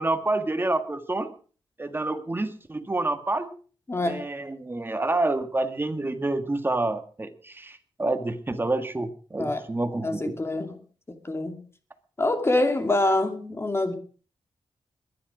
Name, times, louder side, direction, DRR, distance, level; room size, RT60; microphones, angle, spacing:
voice 1, 0.0-1.3 1.8-3.5 4.0-10.4, right 2 dB, 20° right, 1.6 m, -28 dB
voice 2, 3.9-4.2 9.4-9.6 10.0-10.7 11.2-11.6 12.2-13.9, left 2 dB, 25° left, 2.7 m, -25 dB
21.5 x 10.5 x 5.0 m
wide cardioid pair, 110°, 10 cm